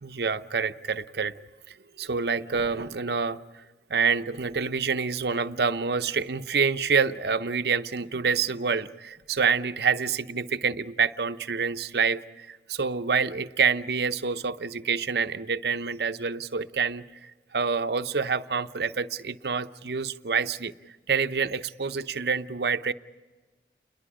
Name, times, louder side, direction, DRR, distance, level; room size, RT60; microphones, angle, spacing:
voice 1, 0.0-1.3 1.7-3.4 3.9-20.7 21.1-22.9, right 5 dB, 65° right, 9 dB, 0.7 m, -27 dB
29.0 x 21.5 x 4.9 m, 1.3 s
head